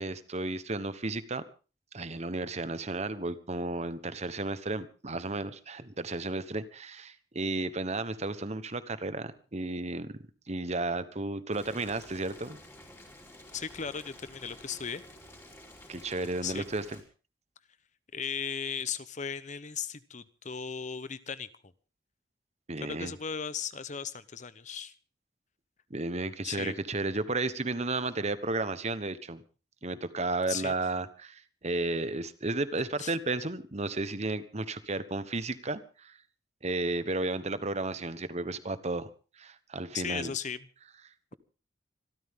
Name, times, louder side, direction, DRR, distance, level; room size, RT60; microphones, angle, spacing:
voice 1, 0.0-1.4 1.9-10.1 10.5-12.6 15.9-17.0 22.7-23.1 25.9-29.4 29.8-36.1 36.6-39.1 39.4-40.3, right 2 dB, 40° right, 13 dB, 1.2 m, -33 dB
Boiling, 11.5-17.0, left 1 dB, 15° left, 4.4 m, -51 dB
voice 2, 13.5-15.0 16.4-16.6 18.1-21.7 22.8-24.9 26.4-26.8 30.5-30.7 33.0-33.1 39.9-40.7, left 6 dB, 45° left, 15 dB, 0.9 m, -36 dB
25.5 x 13.5 x 3.7 m, 0.35 s
head